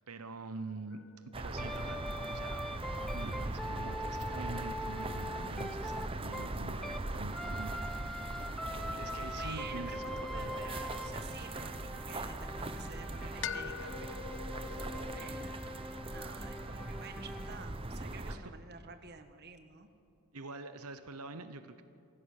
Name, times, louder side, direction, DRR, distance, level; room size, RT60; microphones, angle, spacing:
voice 1, 0.1-1.0 1.4-2.7 3.1-8.4 8.7-10.6 18.3-18.4 20.3-21.8, right 3 dB, 90° right, 10 dB, 1.0 m, -45 dB
sound 1, 0.9-5.2 9.5-12.0 13.4-15.3, left 8 dB, 55° left, 0.5 m, -46 dB
sound 2, 1.3-18.4, right 2 dB, 25° right, 0.9 m, -40 dB
sound 3, 1.6-7.1 7.3-17.6, left 1 dB, ahead, 0.5 m, -43 dB
voice 2, 9.4-14.9 15.1-19.9, right 5 dB, 50° right, 8 dB, 1.4 m, -50 dB
25.5 x 16.5 x 6.7 m, 2.5 s
head